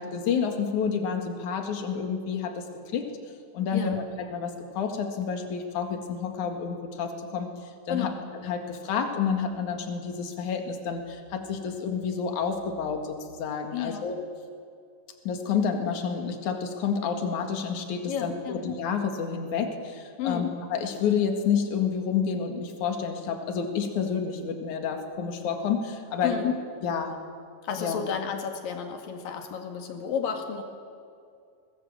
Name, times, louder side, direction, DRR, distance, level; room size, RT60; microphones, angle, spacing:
voice 1, 0.0-2.6 2.9-3.1 3.5-7.5 7.9-8.1 8.4-14.2 15.2-26.5 26.8-27.1 27.8-28.0, left 6 dB, 65° left, 4 dB, 3.3 m, -29 dB
voice 2, 13.7-14.1 18.1-18.6 20.2-20.5 26.2-26.5 27.6-30.6, left 7 dB, 85° left, 4 dB, 3.7 m, -32 dB
23.5 x 20.5 x 7.4 m, 2.4 s
omnidirectional pair, 3.9 m